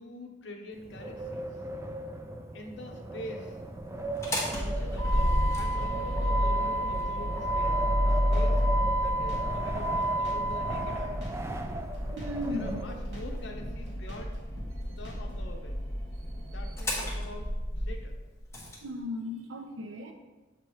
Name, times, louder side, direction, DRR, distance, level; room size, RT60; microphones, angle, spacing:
voice 1, 0.0-1.6 2.5-3.6 4.6-8.6 9.0-11.2 12.5-14.4 14.9-15.8 16.4-18.2, left 1 dB, 65° left, 3 dB, 0.8 m, -45 dB
Wind, 0.7-13.4, right 1 dB, 15° right, 0.3 m, -38 dB
Motor vehicle (road), 4.1-18.8, equal, 15° left, 1.0 m, -30 dB
Drum kit, 7.9-15.5, equal, 60° right, 1.9 m, -46 dB
voice 2, 12.1-12.8 14.8-15.0 16.2-16.7 18.8-20.1, left 1 dB, 80° right, 5 dB, 0.7 m, -37 dB
6.8 x 3.0 x 4.7 m, 1.2 s
head